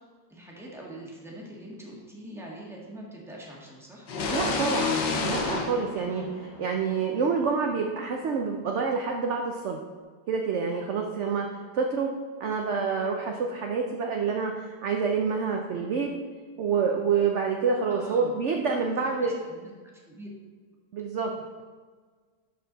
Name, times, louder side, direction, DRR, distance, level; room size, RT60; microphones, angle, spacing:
voice 1, 0.3-4.1 6.1-6.3 17.9-18.4 19.2-19.7 20.1-20.3, right 1 dB, ahead, -3 dB, 1.4 m, -43 dB
sound 1, 4.1-6.9, left 4 dB, 85° left, 1.7 m, -29 dB
voice 2, 4.3-6.2 6.6-9.8 10.3-12.1 12.4-16.1 16.6-19.4 20.9-21.3, right 5 dB, 60° right, 2 dB, 0.7 m, -27 dB
11.5 x 4.5 x 4.0 m, 1.5 s
omnidirectional pair, 1.9 m